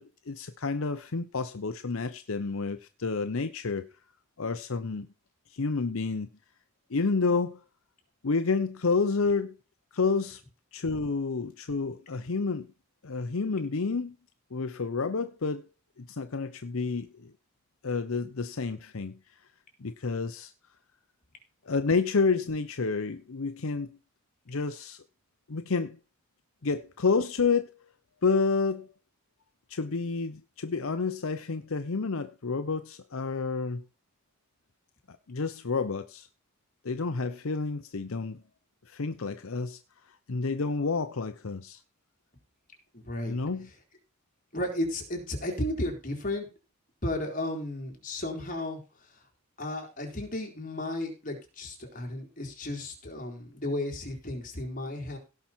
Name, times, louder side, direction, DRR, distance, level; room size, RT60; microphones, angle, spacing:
voice 1, 0.0-3.9 4.4-5.1 5.5-6.3 6.9-7.6 8.2-9.5 9.9-10.4 10.7-12.7 13.0-14.1 14.5-15.7 16.0-17.3 17.8-19.2 19.8-20.5 21.7-23.9 24.5-25.0 25.5-26.0 26.6-27.7 28.2-28.9 29.7-33.8 35.3-36.3 36.8-38.4 38.9-39.8 40.3-41.8 43.3-43.7, left 4 dB, 75° left, 0.7 m, -29 dB
voice 2, 42.9-43.4 43.6-43.7 44.5-46.5 47.0-49.2 49.6-55.2, left 1 dB, 40° left, 3.8 m, -34 dB
17.0 x 5.9 x 4.4 m
head